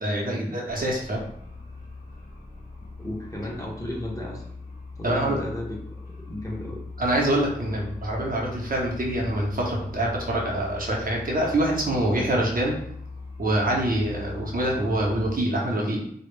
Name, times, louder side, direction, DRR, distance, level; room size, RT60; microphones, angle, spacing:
voice 1, 0.0-1.2 5.0-5.4 7.0-12.7 13.4-16.0, right 1 dB, 55° right, -3 dB, 0.6 m, -25 dB
sound 1, 0.6-15.3, left 3 dB, 55° left, 0.8 m, -40 dB
voice 2, 3.0-4.5 5.0-6.0 6.3-6.8, left 1 dB, 20° left, -2 dB, 0.5 m, -34 dB
2.0 x 2.0 x 3.0 m, 0.70 s
wide cardioid pair, 70°, 18 cm